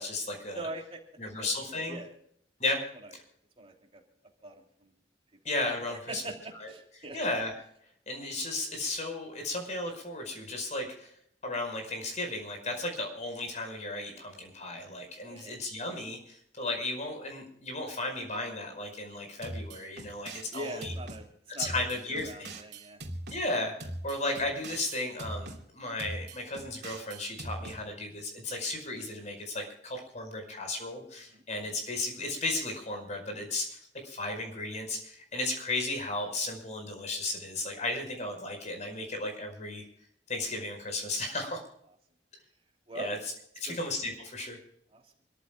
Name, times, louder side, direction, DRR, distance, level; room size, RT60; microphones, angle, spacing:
voice 1, 0.0-0.7 1.2-2.0 2.6-2.8 3.1-3.2 5.4-6.2 6.6-6.7 7.1-7.6 8.1-11.1 11.4-20.9 21.6-22.5 23.3-23.7 24.0-39.8 40.3-41.6 42.9-44.6, left 2 dB, 40° left, 4 dB, 5.1 m, -35 dB
voice 2, 0.5-1.0 1.4-2.1 3.6-4.0 4.4-4.9 5.8-7.2 14.0-14.2 15.2-15.5 20.5-21.3 21.5-23.0 31.3-31.4 42.9-43.1 43.7-43.8 44.9-45.0, right 2 dB, 35° right, 1 dB, 3.1 m, -42 dB
sound 1, 19.4-21.2 21.6-23.4 23.8-25.6 26.0-27.8, right 1 dB, 65° right, 3.0 m, -41 dB
28.0 x 14.5 x 2.3 m, 0.69 s
head